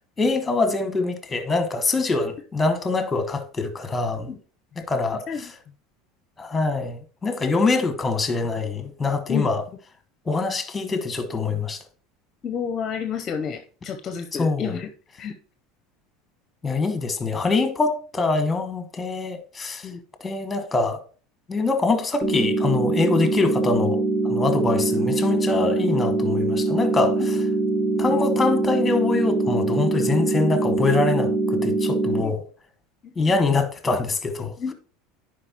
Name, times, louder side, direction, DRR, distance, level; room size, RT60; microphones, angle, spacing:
voice 1, 0.2-4.3 4.8-5.5 6.4-9.6 10.2-11.8 14.4-14.7 16.6-19.9 20.2-21.0 21.5-27.4 28.0-32.4 33.2-34.5, left 3 dB, 15° left, 1.2 m, -24 dB
voice 2, 12.4-14.9 15.2-15.3 19.8-20.0 32.2-32.3 33.0-33.4 34.6-34.7, left 7 dB, 35° left, 0.7 m, -30 dB
sound 1, 22.2-32.2, right 3 dB, 5° right, 0.9 m, -23 dB
9.9 x 4.9 x 2.9 m
supercardioid pair, 110°, 0 cm